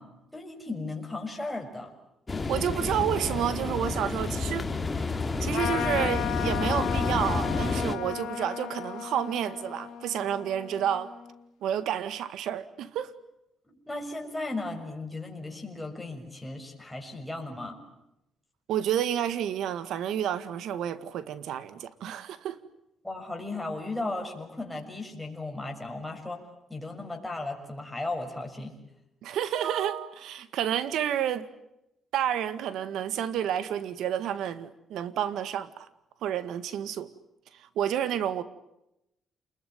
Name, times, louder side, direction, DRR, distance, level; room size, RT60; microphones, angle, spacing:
voice 1, 0.0-1.9 13.7-17.8 23.0-26.4 26.7-28.7, left 2 dB, 10° left, 6.7 m, -36 dB
sound 1, 2.3-8.0, left 3 dB, 25° left, 2.9 m, -30 dB
voice 2, 2.5-4.7 5.4-11.1 11.6-13.1 18.7-22.6 29.2-31.5 32.1-35.9 36.2-37.1 37.6-38.4, right 10 dB, 80° right, 1.8 m, -30 dB
Trumpet, 5.5-11.3, left 11 dB, 90° left, 2.3 m, -35 dB
29.5 x 21.5 x 9.5 m
cardioid pair, 90°, 0 cm